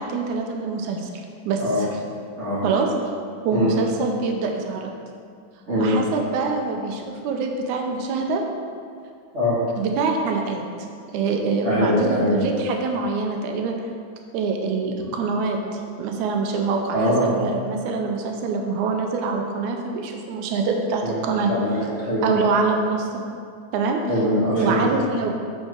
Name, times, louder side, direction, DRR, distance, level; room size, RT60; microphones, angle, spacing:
voice 1, 0.0-1.6 2.6-2.9 3.4-4.9 5.8-8.4 9.8-10.6 11.1-13.8 14.3-15.6 16.0-21.5 22.2-23.2 23.7-24.0 24.5-25.3, right 4 dB, 85° right, 2 dB, 2.0 m, -25 dB
voice 2, 11.6-12.4 16.9-17.4 21.0-21.2 21.5-22.3 24.1-24.9, equal, 35° right, -9 dB, 1.3 m, -22 dB
7.6 x 4.6 x 4.4 m, 2.2 s
omnidirectional pair, 3.5 m